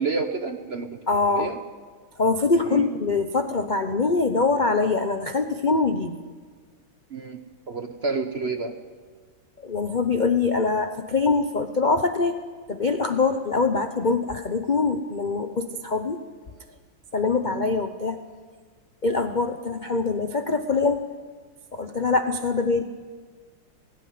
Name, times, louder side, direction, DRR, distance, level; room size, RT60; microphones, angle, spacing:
voice 1, 0.0-1.0 1.4-1.6 2.7-2.9 7.1-8.8 17.5-17.6, right 4 dB, 45° right, 6 dB, 0.9 m, -29 dB
voice 2, 1.1-1.5 2.2-6.2 9.6-12.4 12.7-16.2 17.1-18.2 19.0-21.0 21.7-22.8, left 4 dB, 55° left, 7 dB, 0.5 m, -23 dB
17.5 x 16.5 x 9.4 m, 1.5 s
omnidirectional pair, 2.2 m